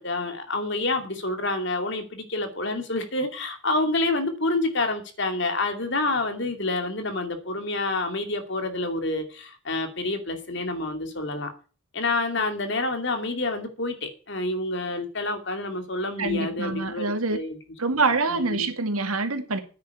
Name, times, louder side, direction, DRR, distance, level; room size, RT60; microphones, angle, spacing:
voice 1, 0.0-11.5 11.9-17.0 17.3-17.6 18.3-18.7, left 2 dB, 55° left, 2.6 m, -28 dB
voice 2, 16.2-17.4 17.8-19.6, right 3 dB, 85° right, 2.2 m, -25 dB
9.6 x 8.6 x 9.5 m
head